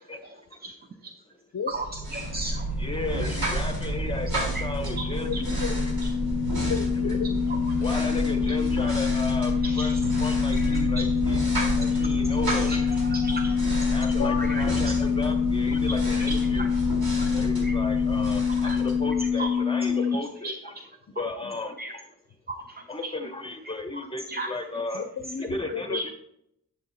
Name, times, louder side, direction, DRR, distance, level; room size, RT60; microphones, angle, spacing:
sound 1, 1.7-19.6, right 1 dB, 90° right, 3.7 m, -30 dB
voice 1, 2.1-2.7 4.5-4.6 8.5-9.2 9.6-10.2 10.5-11.0 12.0-13.6 13.9-14.0 14.4-14.6 16.2-16.7 17.2-17.3 17.6-17.8 18.6-18.8 19.3-19.5 20.4-20.5 21.8-21.9 22.5-22.6 24.3-24.5 25.9-26.0, right 2 dB, 30° right, 5 dB, 0.7 m, -36 dB
voice 2, 2.8-5.3 5.6-5.7 6.6-6.7 7.0-7.2 7.8-11.4 11.8-12.9 13.9-16.7 17.3-20.7 21.2-21.7 22.9-25.0 25.4-26.1, left 3 dB, 15° left, 5 dB, 1.0 m, -34 dB
sound 2, 4.0-20.2, left 7 dB, 60° right, 0.9 m, -26 dB
voice 3, 5.2-6.0 6.6-7.6 14.1-14.6 21.1-21.2 21.4-21.5 24.9-26.1, left 6 dB, 50° left, 11 dB, 0.6 m, -34 dB
11.5 x 7.7 x 2.7 m, 0.78 s
wide cardioid pair, 130°, 35 cm